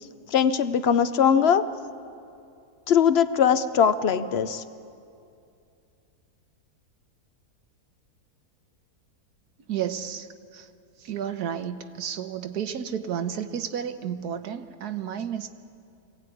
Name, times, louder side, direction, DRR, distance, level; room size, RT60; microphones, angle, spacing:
voice 1, 0.3-1.7 2.9-4.6, left 7 dB, 55° left, 12 dB, 0.7 m, -21 dB
voice 2, 9.7-10.7 11.0-15.5, right 8 dB, 75° right, 9 dB, 1.4 m, -32 dB
23.0 x 17.0 x 9.1 m, 2.6 s
omnidirectional pair, 1.7 m